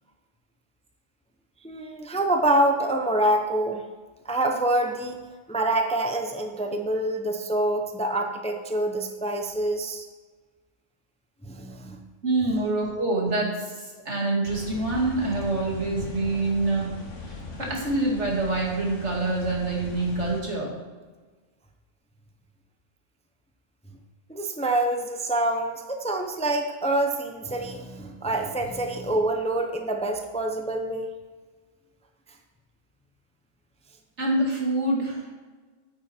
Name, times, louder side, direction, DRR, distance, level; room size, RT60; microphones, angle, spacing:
voice 1, 1.6-3.8 4.2-5.2 5.5-10.1 11.4-12.0 24.3-31.2, right 1 dB, 5° left, 4 dB, 0.6 m, -26 dB
voice 2, 12.2-16.9 17.2-20.7 34.2-35.3, right 2 dB, 60° right, -2 dB, 2.6 m, -26 dB
sound 1, 14.4-20.4, left 2 dB, 70° left, 1.7 m, -39 dB
9.1 x 9.0 x 4.4 m, 1.4 s
omnidirectional pair, 1.3 m